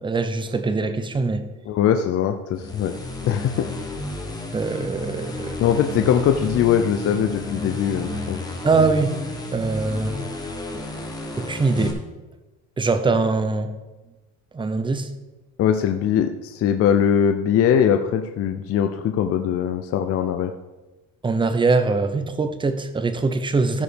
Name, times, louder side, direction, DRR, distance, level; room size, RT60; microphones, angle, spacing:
voice 1, 0.0-1.4 4.5-5.6 8.6-9.2 9.5-10.2 11.4-12.0 12.8-13.7 14.5-15.1 21.2-23.8, right 3 dB, 15° right, 10 dB, 0.7 m, -22 dB
voice 2, 1.7-2.9 3.3-3.7 5.6-8.4 15.6-20.5, left 9 dB, 40° left, 7 dB, 0.6 m, -21 dB
sound 1, 2.5-11.9, left 1 dB, 10° left, 1.5 m, -32 dB
14.0 x 4.9 x 5.1 m, 1.1 s
cardioid pair, 140°, 35 cm